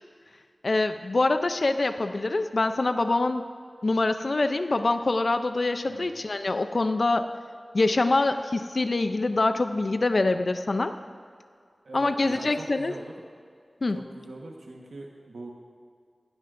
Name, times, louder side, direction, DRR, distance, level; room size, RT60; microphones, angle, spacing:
voice 1, 0.6-3.4 3.8-7.3 7.7-10.9 11.9-12.9 13.8-14.0, left 2 dB, 60° left, 9 dB, 0.5 m, -25 dB
voice 2, 11.8-13.1 13.9-15.5, right 2 dB, 90° right, -1 dB, 1.3 m, -42 dB
18.0 x 16.5 x 2.6 m, 2.2 s
wide cardioid pair, 75°, 0 cm